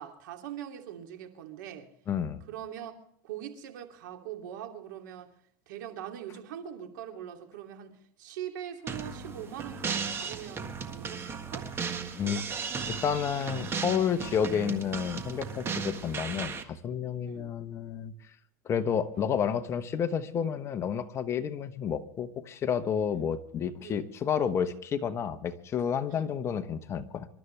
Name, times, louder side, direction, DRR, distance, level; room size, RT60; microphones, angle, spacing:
voice 1, 0.0-1.9 2.5-2.9 3.2-5.3 5.7-11.7 12.2-12.4 17.2-17.5 19.1-19.3 23.1-23.3 23.8-24.0 26.1-26.3, right 10 dB, 85° right, 4 dB, 2.9 m, -42 dB
voice 2, 2.1-2.4 12.2-12.5 12.9-18.1 18.6-27.3, left 7 dB, 30° left, 8 dB, 1.2 m, -30 dB
sound 1, 8.9-16.6, right 5 dB, 25° right, 1.6 m, -36 dB
26.5 x 12.5 x 3.4 m, 0.65 s
supercardioid pair, 140°, 10 cm